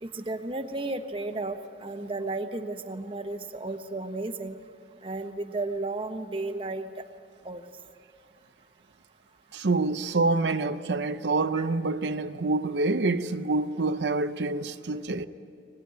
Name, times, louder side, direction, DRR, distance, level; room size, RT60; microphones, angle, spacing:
voice 1, 0.0-4.6 5.0-6.9 7.4-7.6 11.6-11.7, right 2 dB, 30° right, 1.1 m, -33 dB
voice 2, 9.5-15.3, right 3 dB, 75° right, 0.7 m, -27 dB
24.5 x 20.0 x 9.5 m
head